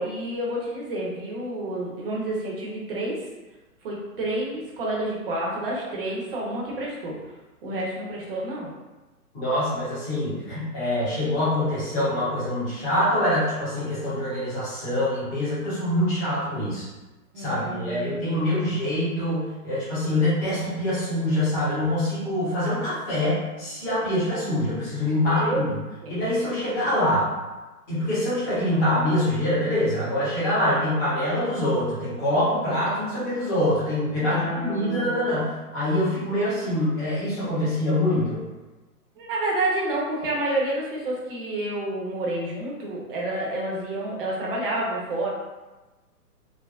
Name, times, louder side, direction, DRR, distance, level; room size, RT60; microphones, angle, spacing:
voice 1, 0.0-3.2 3.8-7.2 7.6-8.7 17.3-18.4 25.3-25.6 26.0-26.1 34.2-35.1 39.2-45.3, right 1 dB, 35° right, -3 dB, 0.7 m, -29 dB
voice 2, 9.3-16.9 17.4-25.7 26.1-27.3 27.9-38.4, left 1 dB, 15° left, -11 dB, 0.7 m, -25 dB
3.3 x 2.0 x 2.3 m, 1.1 s
hypercardioid pair, 145°, 47 cm